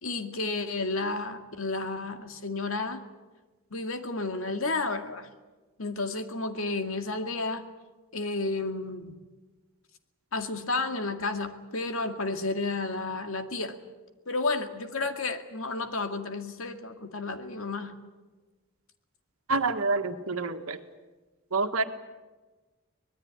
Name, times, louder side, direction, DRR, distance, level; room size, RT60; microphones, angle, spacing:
voice 1, 0.0-3.0 3.7-5.3 5.8-7.6 8.1-9.1 10.3-13.8 14.3-17.9, left 3 dB, 75° left, 6 dB, 2.2 m, -31 dB
voice 2, 19.5-20.8 21.5-21.8, right 3 dB, 90° right, 7 dB, 1.8 m, -27 dB
25.0 x 20.0 x 9.7 m, 1.3 s
head